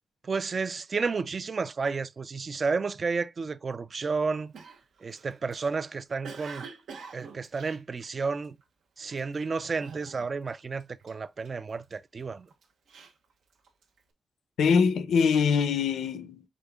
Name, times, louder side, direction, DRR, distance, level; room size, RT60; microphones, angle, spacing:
voice 1, 0.2-4.5 5.0-6.7 7.1-8.6 9.0-12.5, right 4 dB, 35° right, 0.3 m, -31 dB
Cough, 4.5-8.6 9.1-9.4 9.8-10.5 10.8-12.0 12.5-14.0, right 5 dB, 80° right, 0.9 m, -46 dB
voice 2, 14.6-16.5, left 6 dB, 85° left, 0.5 m, -23 dB
5.1 x 4.3 x 2.2 m
wide cardioid pair, 140°, 0 cm